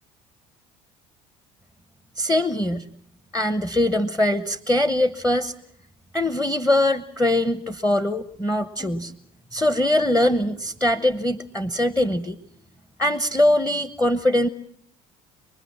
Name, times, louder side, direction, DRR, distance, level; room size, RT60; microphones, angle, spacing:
voice 1, 2.2-2.9 3.3-5.5 6.1-9.1 9.5-12.4 13.0-14.5, left 1 dB, 10° left, 13 dB, 1.1 m, -22 dB
26.0 x 20.5 x 7.4 m, 0.64 s
hypercardioid pair, 70°, 17 cm